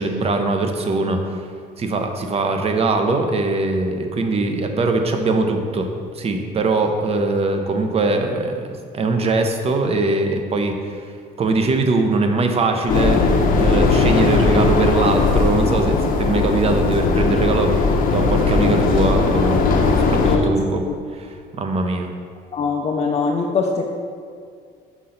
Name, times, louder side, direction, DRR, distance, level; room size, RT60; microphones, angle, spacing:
voice 1, 0.0-1.4 1.8-11.1 11.4-19.6 20.0-20.8 21.1-22.1, right 3 dB, 35° right, 5 dB, 0.7 m, -21 dB
sound 1, 12.9-20.4, left 3 dB, 55° left, 0.8 m, -18 dB
voice 2, 22.5-23.8, left 4 dB, 40° left, 0 dB, 0.5 m, -22 dB
6.0 x 3.8 x 5.6 m, 2.2 s
cardioid pair, 110°, 17 cm